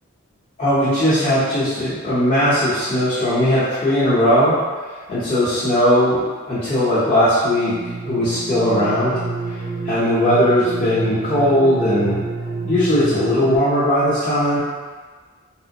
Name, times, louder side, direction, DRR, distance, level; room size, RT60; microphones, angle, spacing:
voice 1, 0.6-4.6 5.1-7.7 8.0-9.2 9.8-12.2 12.6-14.6, equal, 30° left, -14 dB, 0.7 m, -18 dB
sound 1, 7.7-13.6, right 3 dB, 40° right, 0.5 m, -28 dB
3.4 x 2.5 x 2.8 m, 1.5 s
head